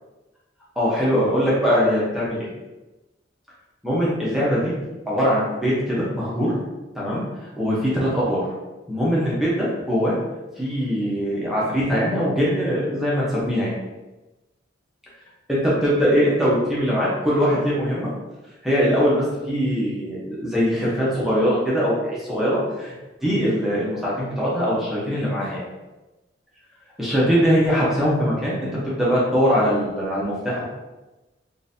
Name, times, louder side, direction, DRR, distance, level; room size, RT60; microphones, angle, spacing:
voice 1, 0.8-2.5 3.8-4.8 5.1-6.5 6.9-7.2 7.6-8.5 8.9-10.2 10.6-13.8 15.5-18.1 18.6-22.9 23.2-25.6 27.0-30.6, equal, ahead, -8 dB, 0.8 m, -21 dB
3.8 x 2.6 x 2.7 m, 1.1 s
head